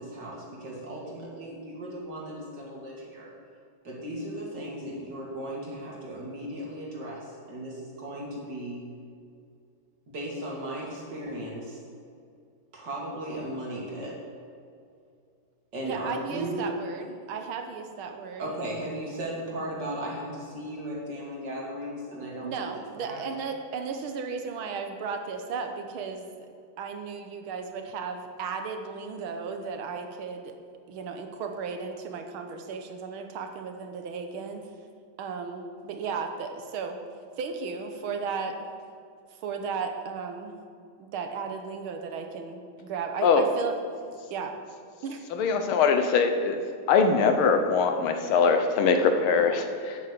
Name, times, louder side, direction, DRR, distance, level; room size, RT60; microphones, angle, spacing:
voice 1, 0.0-3.3 3.8-8.8 10.1-11.8 12.7-14.2 15.7-16.7 18.4-22.7 23.0-23.4, right 1 dB, 55° right, -3 dB, 3.0 m, -36 dB
voice 2, 15.8-18.5 22.4-26.3 26.8-30.5 30.9-34.6 35.2-37.0 37.4-38.6 39.4-40.5 41.0-43.8 44.3-44.6 45.0-45.2, right 5 dB, 90° right, 5 dB, 1.8 m, -35 dB
voice 3, 45.3-46.6 46.9-50.0, left 5 dB, 90° left, 6 dB, 1.8 m, -22 dB
9.4 x 8.4 x 6.9 m, 2.4 s
omnidirectional pair, 2.3 m